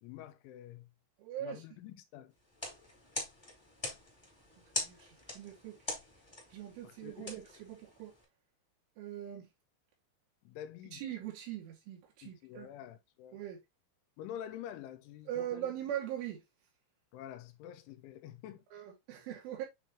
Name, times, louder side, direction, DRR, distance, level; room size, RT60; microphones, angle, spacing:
voice 1, 0.0-0.9 1.4-2.3 6.8-7.4 10.4-11.0 12.2-13.4 14.2-15.7 17.1-18.7, left 11 dB, 85° left, 3.2 m, -47 dB
voice 2, 1.2-1.6 4.8-5.8 6.5-8.1 9.0-9.5 10.9-12.7 13.3-13.6 15.3-16.4 18.7-19.7, right 11 dB, 90° right, 4.5 m, -41 dB
sound 1, 2.4-8.2, left 1 dB, 10° left, 1.1 m, -43 dB
9.0 x 3.7 x 2.9 m
omnidirectional pair, 5.4 m